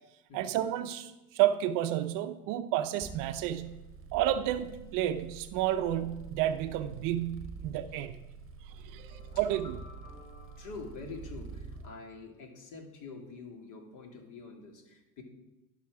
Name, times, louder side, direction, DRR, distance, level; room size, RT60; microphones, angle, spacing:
voice 1, 0.3-3.8 4.1-8.2 8.8-9.8, right 12 dB, 50° right, 10 dB, 0.7 m, -31 dB
sound 1, 3.0-11.9, right 4 dB, 30° right, 1.1 m, -47 dB
sound 2, 8.8-11.9, left 3 dB, 70° left, 4.0 m, -56 dB
voice 2, 10.6-15.2, left 4 dB, 45° left, 2 dB, 2.4 m, -46 dB
11.5 x 5.8 x 4.8 m, 1.0 s
hypercardioid pair, 95°, 43 cm